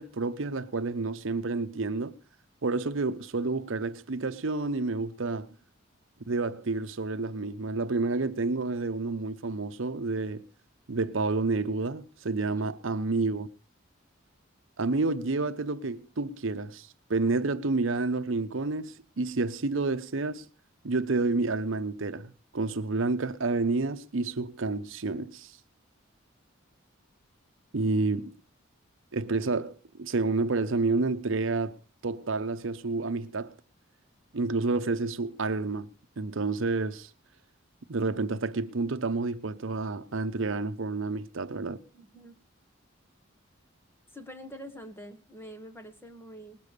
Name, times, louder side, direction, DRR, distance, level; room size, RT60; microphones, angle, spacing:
voice 1, 0.0-2.1 2.6-5.5 6.3-10.5 10.9-13.5 14.8-20.5 20.8-25.5 27.7-28.3 29.1-31.7 32.0-33.5 34.3-35.9 36.2-37.1 37.9-41.8, right 3 dB, 70° right, 0.8 m, -29 dB
voice 2, 41.9-42.4 44.1-46.6, equal, 10° left, 1.3 m, -45 dB
19.5 x 7.0 x 6.6 m
head